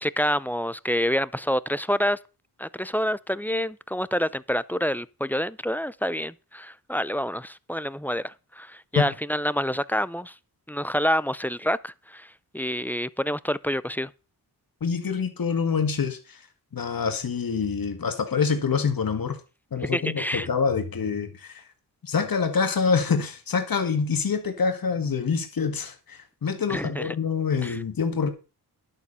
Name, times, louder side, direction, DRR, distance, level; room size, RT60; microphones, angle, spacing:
voice 1, 0.0-2.2 2.6-10.3 10.7-14.1 19.8-20.5 26.7-27.1 27.6-27.8, equal, 5° left, 0.5 m, -27 dB
voice 2, 14.8-16.4 16.7-19.4 19.7-21.6 22.0-28.3, left 5 dB, 60° left, 2.0 m, -26 dB
11.5 x 7.2 x 5.6 m
wide cardioid pair, 100°, 39 cm